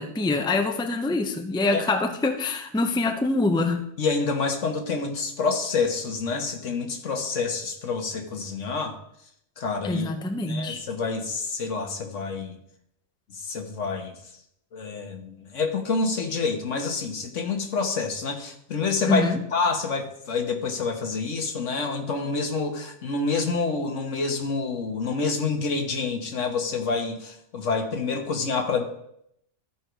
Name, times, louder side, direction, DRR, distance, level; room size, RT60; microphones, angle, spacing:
voice 1, 0.0-3.9 9.8-10.8 19.1-19.4, left 2 dB, 5° left, 6 dB, 0.5 m, -25 dB
voice 2, 4.0-9.0 9.6-10.1 10.4-12.6 13.3-14.1 14.7-28.8, left 4 dB, 80° left, 4 dB, 1.6 m, -27 dB
13.5 x 4.7 x 5.0 m, 0.75 s
omnidirectional pair, 1.3 m